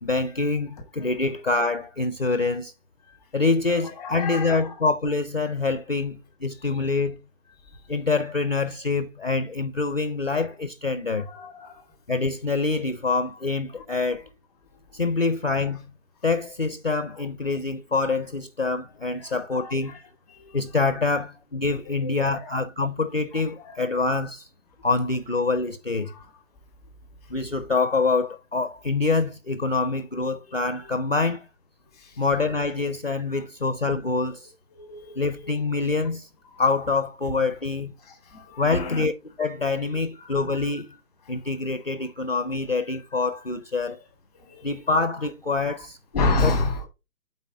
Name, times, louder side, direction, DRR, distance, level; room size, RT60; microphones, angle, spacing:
voice 1, 0.0-2.7 3.3-7.2 7.9-11.3 12.1-14.2 14.9-15.9 16.2-20.0 20.5-24.5 24.8-26.1 27.3-31.5 32.2-34.5 35.2-36.3 36.6-37.9 38.6-39.1 39.4-40.9 41.3-44.0 44.6-46.0 46.4-46.5, left 3 dB, 40° left, 0.4 m, -25 dB
voice 2, 4.0-4.7 7.7-7.8 11.1-11.8 13.7-13.8 14.1-14.2 17.2-17.3 19.3-19.9 20.3-20.6 22.0-22.5 23.6-23.8 26.1-26.3 30.5-30.6 31.9-32.2 33.3-33.4 34.7-35.1 38.3-39.1 40.2-40.7 44.4-44.7 46.1-46.9, left 2 dB, ahead, 0.8 m, -30 dB
8.3 x 4.1 x 4.3 m
hypercardioid pair, 160°, 48 cm